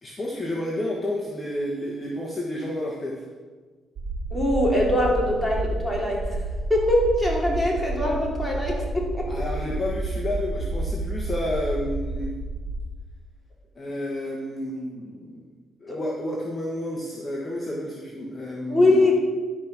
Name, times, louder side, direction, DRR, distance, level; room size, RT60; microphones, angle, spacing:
voice 1, 0.0-3.2 9.3-12.4 13.7-15.5 15.8-18.9, left 1 dB, 25° left, -3 dB, 1.6 m, -30 dB
sound 1, 4.0-12.8, right 2 dB, 55° right, 1.1 m, -30 dB
voice 2, 4.3-6.4 6.7-9.4 15.9-16.0 18.7-19.2, left 1 dB, 5° left, -3 dB, 3.2 m, -22 dB
12.0 x 5.3 x 6.2 m, 1.4 s
cardioid pair, 90°, 0 cm